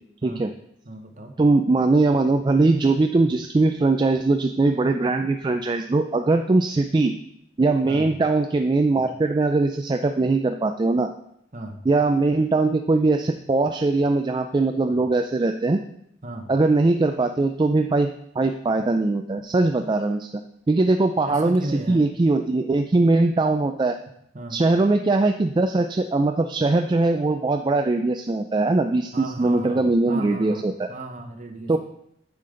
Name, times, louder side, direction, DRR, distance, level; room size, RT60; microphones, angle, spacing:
voice 1, 0.8-1.3 3.3-3.4 5.5-5.7 7.8-8.1 9.0-9.1 11.5-11.8 14.9-15.0 16.2-16.5 21.2-22.0 24.3-24.6 29.1-31.8, right 1 dB, 45° right, 4 dB, 1.1 m, -36 dB
voice 2, 1.4-7.1 7.6-11.1 11.9-15.8 16.5-18.1 18.4-20.3 20.7-21.6 21.9-24.0 24.5-30.9 31.7-31.8, right 3 dB, 25° right, 6 dB, 0.3 m, -21 dB
9.4 x 6.7 x 3.8 m, 0.74 s
head